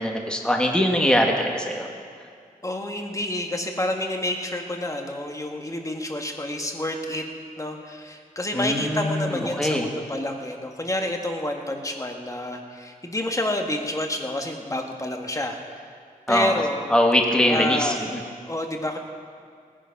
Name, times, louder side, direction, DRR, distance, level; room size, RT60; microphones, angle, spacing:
voice 1, 0.0-1.9 8.5-9.9 16.3-16.6 16.9-18.2, left 1 dB, 5° left, 1 dB, 1.7 m, -22 dB
voice 2, 2.6-7.3 7.6-15.8 16.3-16.9 17.5-18.0 18.5-19.0, left 1 dB, 20° left, 3 dB, 1.7 m, -29 dB
19.0 x 10.0 x 5.8 m, 2.2 s
wide cardioid pair, 85°, 15 cm